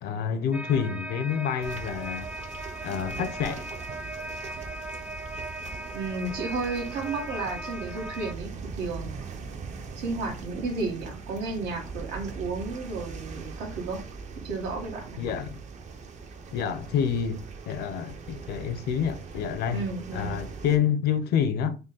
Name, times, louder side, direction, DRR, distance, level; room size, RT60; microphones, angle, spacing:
voice 1, 0.0-2.3 2.8-3.7 15.2-15.6 16.5-19.8 20.1-21.8, left 8 dB, 70° left, 0.6 m, -28 dB
sound 1, 0.5-8.3, right 1 dB, 5° right, 0.4 m, -38 dB
sound 2, 1.6-20.8, right 4 dB, 45° right, 0.6 m, -41 dB
voice 2, 5.9-9.1 10.0-14.0 14.4-15.2 19.7-20.4, right 3 dB, 80° right, 1.3 m, -33 dB
3.7 x 2.2 x 3.8 m
cardioid pair, 110°, 17 cm